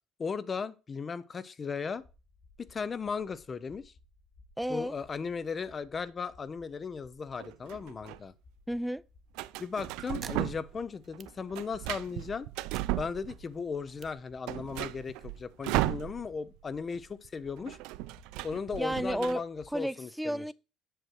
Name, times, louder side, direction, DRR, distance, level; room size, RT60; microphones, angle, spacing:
voice 1, 0.2-2.0 2.6-3.9 4.7-8.3 9.6-12.5 13.0-17.8 18.4-20.5, left 5 dB, 30° left, 0.6 m, -36 dB
sound 1, 2.0-19.8, left 2 dB, 55° left, 3.3 m, -61 dB
voice 2, 4.6-5.0 8.7-9.0 18.8-19.4 19.7-20.5, equal, 5° right, 0.3 m, -32 dB
sound 2, 7.4-8.2 9.4-10.8 11.1-13.6 14.0-14.1 14.3-16.6 16.8-17.0 17.2-19.3, right 17 dB, 85° right, 0.4 m, -35 dB
sound 3, 10.2-12.0 12.4-15.1, right 7 dB, 45° right, 0.7 m, -53 dB
7.9 x 6.4 x 4.7 m
cardioid pair, 105°, 0 cm